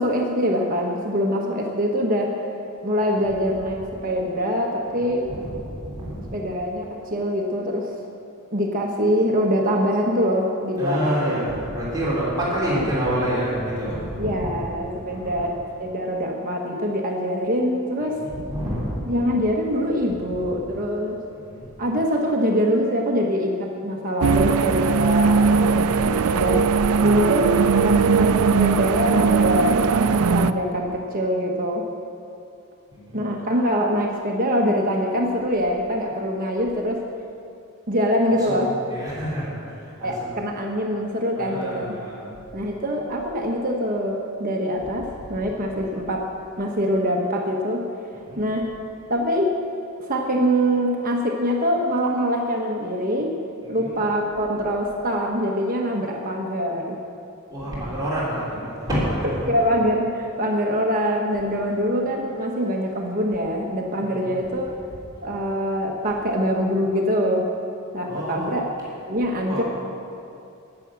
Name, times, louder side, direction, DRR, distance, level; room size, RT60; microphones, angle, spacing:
voice 1, 0.0-2.3 2.8-5.3 6.3-8.0 8.5-11.4 14.2-15.5 15.8-18.2 19.0-21.2 21.8-26.6 27.0-27.5 27.8-31.9 33.1-37.0 37.9-38.7 40.0-42.0 42.5-46.3 46.6-47.9 48.4-48.7 49.1-49.6 50.0-53.4 53.7-57.0 59.4-64.7 65.2-67.5 67.9-68.7 69.1-69.6, equal, 40° right, 0 dB, 1.2 m, -24 dB
voice 2, 5.0-6.3 10.8-14.7 15.1-15.3 18.0-19.0 21.3-21.7 27.5-28.1 32.9-33.2 38.3-40.3 41.4-42.3 45.2-45.3 48.1-48.4 53.6-53.9 57.5-59.5 61.4-61.5 64.0-64.3 68.1-68.6 69.4-69.6, equal, 20° right, -8 dB, 3.9 m, -28 dB
sound 1, 24.2-30.5, right 5 dB, 85° right, 0.4 m, -19 dB
18.5 x 7.0 x 7.5 m, 2.6 s
head